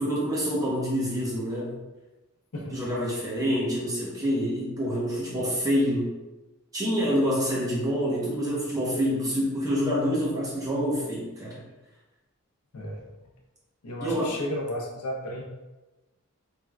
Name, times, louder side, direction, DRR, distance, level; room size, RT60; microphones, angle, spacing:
voice 1, 0.0-1.7 2.7-6.1 6.7-11.6 14.0-14.3, equal, 15° right, -6 dB, 0.7 m, -27 dB
voice 2, 12.7-13.2 13.8-15.4, equal, 90° left, -1 dB, 0.6 m, -33 dB
3.4 x 2.4 x 2.2 m, 1.1 s
head